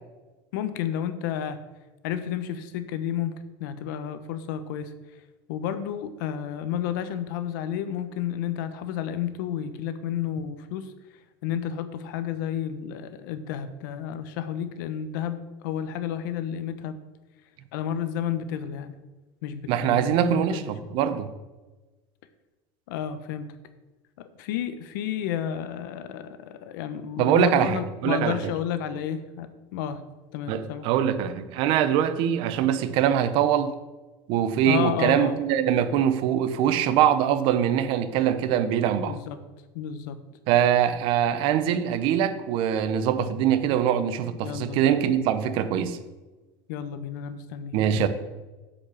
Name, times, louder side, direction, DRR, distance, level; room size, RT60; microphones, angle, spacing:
voice 1, 0.5-1.6 2.0-4.9 5.5-10.9 11.4-17.0 17.7-18.9 19.4-20.7 22.9-23.5 24.2-30.0 30.3-30.9 34.6-35.4 39.1-39.4 39.7-40.2 44.4-44.9 46.7-47.7, left 9 dB, 85° left, 0.9 m, -31 dB
voice 2, 19.7-21.3 27.2-28.5 30.5-33.7 34.3-39.2 40.5-46.0 47.7-48.1, right 9 dB, 55° right, 0.8 m, -23 dB
8.4 x 5.3 x 7.2 m
cardioid pair, 150°, 10 cm